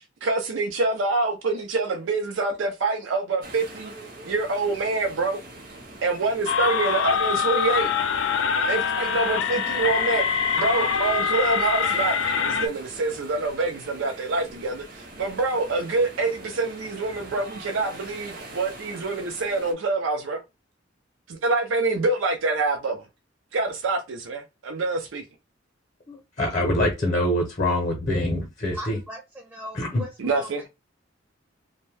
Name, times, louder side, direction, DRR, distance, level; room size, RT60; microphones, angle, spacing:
voice 1, 0.2-3.9 4.2-5.4 6.0-7.9 8.7-10.3 10.5-20.4 21.3-23.0 23.5-25.2 30.2-30.6, right 3 dB, 85° right, 0.5 m, -26 dB
sound 1, 3.4-19.7, right 2 dB, 45° right, 0.7 m, -43 dB
sound 2, 6.5-12.7, left 6 dB, 75° left, 0.4 m, -24 dB
voice 2, 26.1-29.0 29.7-30.0, left 1 dB, 40° left, 0.7 m, -25 dB
voice 3, 28.7-30.7, equal, 10° right, 0.5 m, -39 dB
2.6 x 2.1 x 3.2 m
head